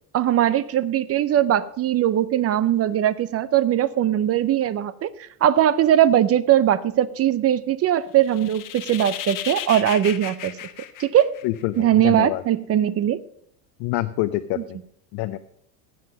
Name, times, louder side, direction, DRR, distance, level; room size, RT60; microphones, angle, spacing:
voice 1, 0.1-10.6 11.0-11.3 11.8-13.2, right 11 dB, 35° right, 17 dB, 0.5 m, -20 dB
sound 1, 8.2-11.8, left 11 dB, 45° left, 1.2 m, -34 dB
voice 2, 11.4-12.4 13.8-14.8 15.1-15.4, left 16 dB, 60° left, 9 dB, 0.8 m, -26 dB
16.0 x 7.7 x 5.3 m, 0.71 s
supercardioid pair, 105°, 46 cm